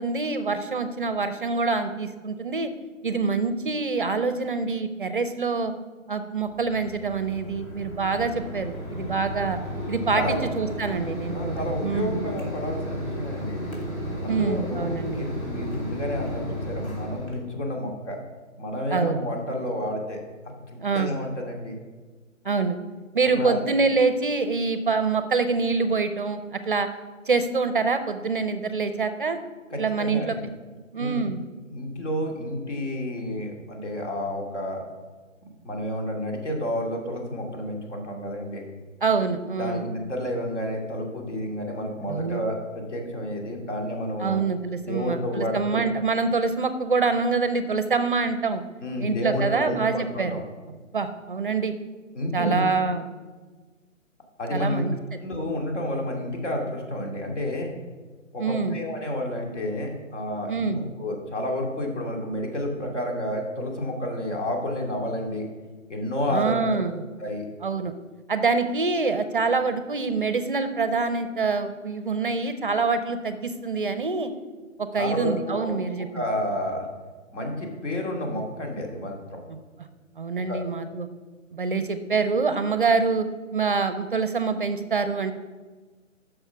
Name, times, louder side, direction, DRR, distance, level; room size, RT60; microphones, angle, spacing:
voice 1, 0.0-2.7 3.0-5.7 6.1-9.6 9.9-12.2 14.3-15.2 18.9-19.2 20.8-21.1 22.4-22.8 23.1-26.9 27.3-29.4 29.8-30.4 30.9-31.4 39.0-39.9 42.1-42.4 44.2-48.6 49.0-50.3 50.9-51.7 52.3-53.0 54.5-55.2 58.4-58.8 60.5-60.8 66.3-67.0 67.6-67.9 68.3-74.3 74.8-76.3 79.5-79.6 80.2-81.1 81.5-83.3 83.5-85.3, right 4 dB, 40° right, 10 dB, 0.5 m, -25 dB
Mechanisms, 6.4-17.4, equal, 85° left, 3.3 m, -33 dB
voice 2, 11.3-13.8 14.2-18.2 18.6-20.2 20.7-21.8 23.4-23.6 29.7-30.4 31.0-31.3 31.7-34.8 35.6-38.6 39.6-44.4 44.8-45.8 48.8-50.4 52.1-52.8 54.4-54.9 55.2-57.7 58.3-65.5 65.9-66.6 67.2-67.4 74.9-75.7 76.1-76.9 77.3-79.4 80.5-80.6, left 1 dB, 60° left, 1 dB, 2.7 m, -30 dB
9.1 x 6.4 x 6.0 m, 1.4 s
figure-of-eight pair, 150°, 40 cm